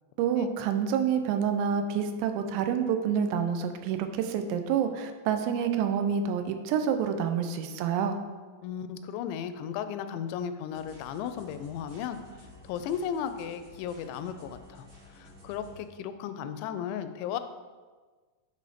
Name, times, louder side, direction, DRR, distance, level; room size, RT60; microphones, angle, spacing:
voice 1, 0.2-8.2, right 7 dB, 85° right, 7 dB, 2.8 m, -28 dB
voice 2, 8.6-12.2 12.7-14.9 15.2-17.4, left 8 dB, 90° left, 10 dB, 2.8 m, -35 dB
sound 1, 10.7-15.8, left 1 dB, 65° right, 4.7 m, -52 dB
9.8 x 4.1 x 5.0 m, 1.4 s
omnidirectional pair, 5.0 m